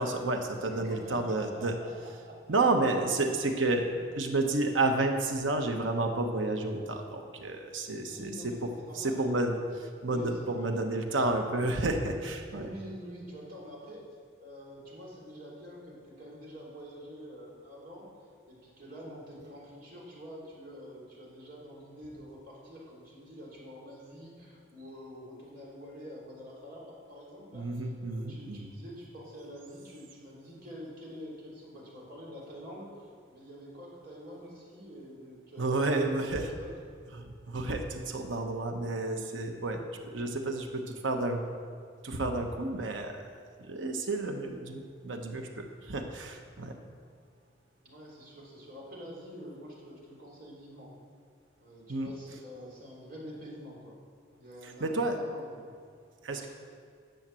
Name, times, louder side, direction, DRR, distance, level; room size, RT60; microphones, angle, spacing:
voice 1, 0.0-1.8 2.5-3.9 4.2-8.7 8.9-12.7 27.5-28.7 35.6-36.5 37.1-39.8 40.1-41.4 42.0-43.2 43.7-46.8 51.9-52.1 54.6-55.2 56.2-56.5, right 2 dB, 85° right, 4 dB, 1.0 m, -31 dB
voice 2, 0.6-1.9 2.2-2.4 8.1-9.6 10.0-10.8 12.5-14.0 14.4-18.1 18.5-36.7 47.8-51.0 51.6-54.0 54.4-55.8 56.3-56.5, equal, 50° right, -5 dB, 3.4 m, -47 dB
10.5 x 7.3 x 7.5 m, 2.1 s
head